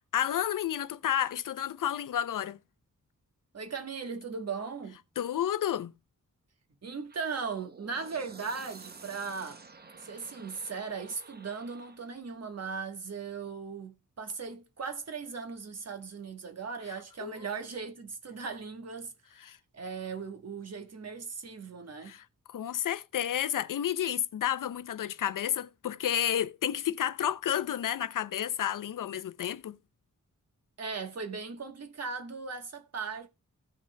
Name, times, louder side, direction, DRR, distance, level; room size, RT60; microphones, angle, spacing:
voice 1, 0.1-2.6 5.2-5.9 17.2-17.3 19.4-19.6 22.1-29.8, left 10 dB, 80° left, 0.6 m, -31 dB
voice 2, 3.5-5.0 6.8-9.6 10.0-19.4 19.7-22.1 30.8-33.3, right 5 dB, 50° right, 1.2 m, -38 dB
sound 1, 7.1-12.2, right 4 dB, 30° right, 0.7 m, -51 dB
17.0 x 5.7 x 2.2 m
wide cardioid pair, 135°, 32 cm